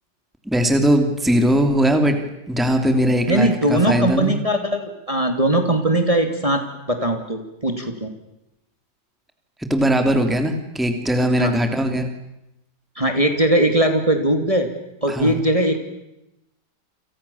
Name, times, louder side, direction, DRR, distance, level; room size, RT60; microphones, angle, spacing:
voice 1, 0.4-2.2 2.5-4.4 9.7-12.1 15.1-15.4, equal, ahead, 5 dB, 2.8 m, -19 dB
voice 2, 3.3-8.1 11.4-11.5 13.0-14.7 15.0-15.8, right 1 dB, 20° right, 5 dB, 2.9 m, -20 dB
30.0 x 28.0 x 7.2 m, 0.89 s
omnidirectional pair, 1.9 m